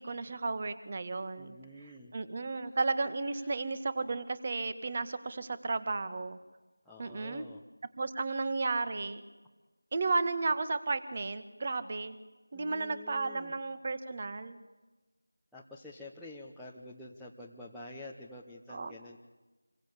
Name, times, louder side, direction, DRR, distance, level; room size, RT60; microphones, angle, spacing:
voice 1, 0.0-6.4 7.0-7.4 8.0-9.2 9.9-12.2 12.5-14.6 18.7-19.0, right 3 dB, 30° right, 12 dB, 1.9 m, -33 dB
voice 2, 1.4-2.1 2.6-2.8 3.4-3.6 6.8-7.6 12.5-13.5 15.5-19.2, left 2 dB, ahead, -10 dB, 1.1 m, -49 dB
28.5 x 23.5 x 8.6 m, 1.2 s
figure-of-eight pair, 170°, 0 cm